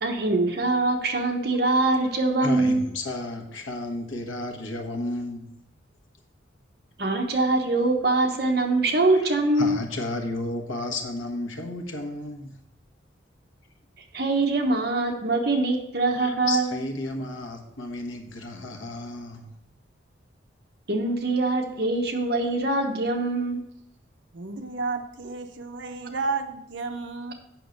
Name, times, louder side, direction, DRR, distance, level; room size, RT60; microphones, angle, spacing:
voice 1, 0.0-2.9 7.0-9.8 14.1-16.7 20.9-23.6, right 2 dB, 55° right, 1.2 m, -23 dB
voice 2, 2.4-5.5 9.1-9.3 9.6-12.6 15.4-15.6 16.2-19.6, left 2 dB, 90° left, 1.3 m, -33 dB
voice 3, 24.3-27.3, right 4 dB, 70° right, 0.7 m, -32 dB
8.3 x 6.0 x 5.2 m
head